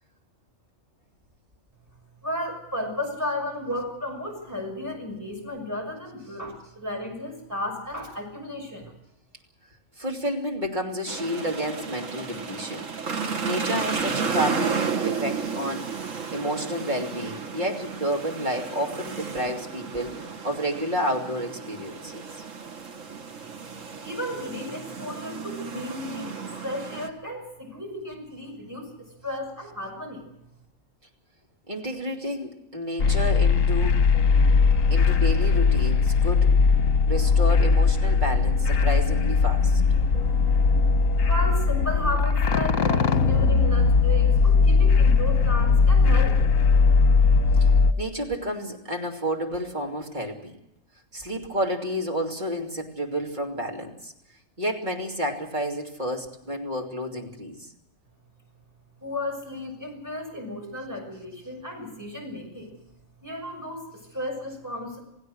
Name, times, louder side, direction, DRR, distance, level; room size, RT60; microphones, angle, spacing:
voice 1, 2.2-8.9 24.0-28.9 29.2-30.3 41.2-46.4 59.0-62.7 63.2-65.0, left 1 dB, 15° right, 0 dB, 6.6 m, -33 dB
voice 2, 10.0-12.9 13.4-15.9 16.3-22.4 31.7-34.1 34.9-36.6 37.0-39.8 48.0-50.6 51.1-54.1 54.6-57.7, equal, 35° right, 1 dB, 3.0 m, -30 dB
sound 1, 11.1-27.1, right 5 dB, 75° right, 1.8 m, -33 dB
sound 2, 33.0-47.9, left 5 dB, 85° left, 1.6 m, -19 dB
28.5 x 16.5 x 6.5 m, 0.85 s
omnidirectional pair, 1.4 m